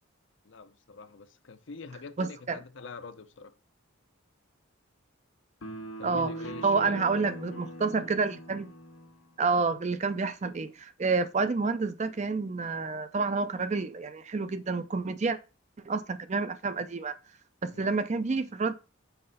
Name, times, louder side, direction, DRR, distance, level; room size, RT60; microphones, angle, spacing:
voice 1, 0.4-3.5 6.0-7.3 17.7-17.9, left 4 dB, 60° left, 0.6 m, -45 dB
voice 2, 2.2-2.6 6.0-6.3 6.6-8.7 9.4-15.4 15.8-17.2 17.6-18.7, right 4 dB, 35° right, 0.4 m, -29 dB
sound 1, 5.6-9.2, right 1 dB, 85° left, 1.3 m, -41 dB
5.7 x 3.2 x 5.4 m
head